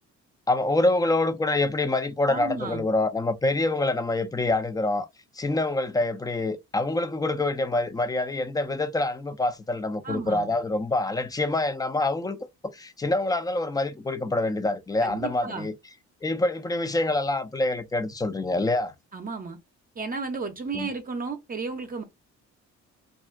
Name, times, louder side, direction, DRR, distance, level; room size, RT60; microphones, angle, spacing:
voice 1, 0.5-5.1 5.3-15.7 16.2-18.9 20.7-20.9, left 2 dB, 15° left, 0.4 m, -26 dB
voice 2, 2.3-2.8 10.0-10.5 15.0-15.7 19.1-19.6 20.0-22.0, right 4 dB, 30° right, 0.6 m, -33 dB
2.4 x 2.1 x 3.6 m
cardioid pair, 90°, 30 cm